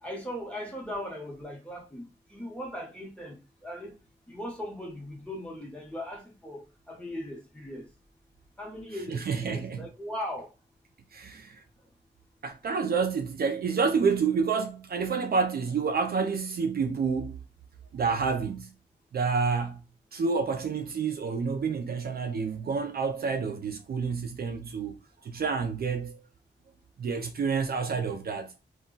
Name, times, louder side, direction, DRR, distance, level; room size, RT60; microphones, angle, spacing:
voice 1, 0.0-4.0 4.3-7.9 8.6-10.5, left 1 dB, 5° left, 1.1 m, -39 dB
voice 2, 9.1-9.9 11.1-11.6 12.4-17.4 17.9-18.7 19.1-19.8 20.1-25.0 25.2-26.2 27.0-28.5, right 5 dB, 55° right, 0.4 m, -29 dB
2.3 x 2.1 x 3.8 m
wide cardioid pair, 100°, 19 cm